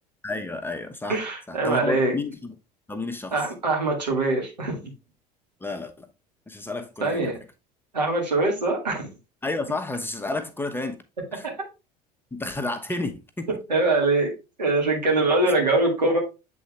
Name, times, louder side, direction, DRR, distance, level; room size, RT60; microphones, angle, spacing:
voice 1, 0.2-1.2 1.5-2.5 2.9-3.3 5.6-6.1 6.5-7.3 9.4-11.0 11.4-11.5 12.3-13.5, left 2 dB, 10° left, 0.9 m, -31 dB
voice 2, 1.1-2.1 3.3-4.9 7.0-7.4 7.9-9.1 11.4-11.5 13.7-14.3 14.6-16.2, right 2 dB, 90° right, 2.0 m, -23 dB
7.5 x 3.9 x 3.4 m
figure-of-eight pair, 70°, 21 cm